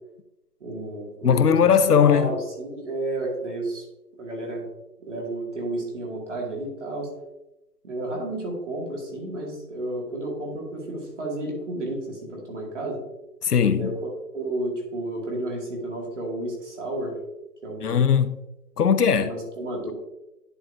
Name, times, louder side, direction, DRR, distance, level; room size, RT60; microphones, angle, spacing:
voice 1, 0.6-3.9 4.2-4.6 5.0-7.1 7.8-13.0 13.8-17.2 17.6-18.0 19.2-19.9, right 2 dB, 45° right, 2.1 m, -31 dB
voice 2, 1.2-2.3 13.4-13.9 17.8-18.4 18.8-19.3, left 7 dB, 65° left, 0.6 m, -19 dB
10.5 x 4.5 x 2.6 m
hypercardioid pair, 180°, 50 cm